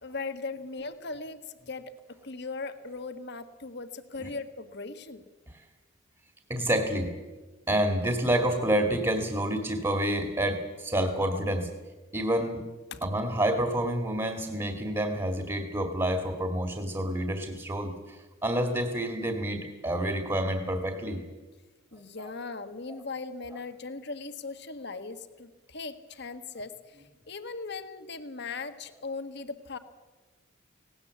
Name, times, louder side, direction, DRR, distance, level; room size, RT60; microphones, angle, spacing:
voice 1, 0.0-1.4 1.7-1.8 2.2-5.2 12.9-13.1 21.9-27.0 27.3-29.8, left 3 dB, 55° left, 9 dB, 1.4 m, -38 dB
voice 2, 6.5-7.1 7.7-11.7 12.1-12.6 13.0-21.2, right 1 dB, 20° right, 5 dB, 2.0 m, -28 dB
18.5 x 18.0 x 8.3 m, 1.2 s
head